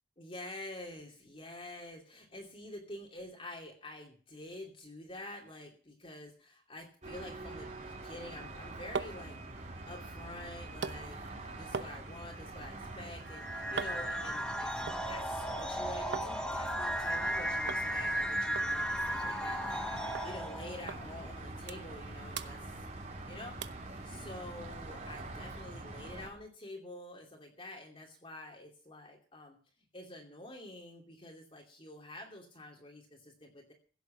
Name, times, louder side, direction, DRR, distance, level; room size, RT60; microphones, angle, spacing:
voice 1, 0.2-9.4 9.9-11.2 11.5-14.7 15.1-22.8 23.3-23.7 24.0-29.6 29.9-33.7, left 1 dB, 30° left, 0 dB, 2.7 m, -48 dB
sound 1, 7.0-26.3, right 2 dB, 40° right, 3.8 m, -45 dB
sound 2, 8.4-16.3 16.6-17.3 17.7-17.9 18.1-18.2 18.5-19.9 20.1-20.3 20.9-21.0 21.4-22.0 22.3-23.2 23.6-23.9 24.4-24.5, right 5 dB, 65° right, 0.9 m, -43 dB
sound 3, 13.3-20.9, equal, 5° left, 1.0 m, -35 dB
16.0 x 8.0 x 6.9 m, 0.41 s
head